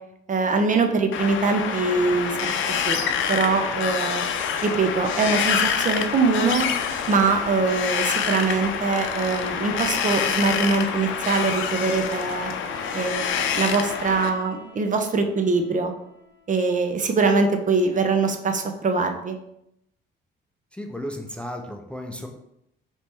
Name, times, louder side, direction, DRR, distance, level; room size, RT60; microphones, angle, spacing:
voice 1, 0.3-3.0 3.3-4.2 4.6-6.7 7.1-12.5 12.9-15.9 16.5-19.4, right 4 dB, 40° right, 6 dB, 0.6 m, -23 dB
Wind, 1.1-14.3, left 7 dB, 75° left, 0.5 m, -26 dB
Bowed string instrument, 12.6-16.5, left 3 dB, 60° right, 1.1 m, -43 dB
voice 2, 20.7-22.3, left 1 dB, 5° left, 3 dB, 0.5 m, -34 dB
3.3 x 3.0 x 4.3 m, 0.80 s
cardioid pair, 90°, 20 cm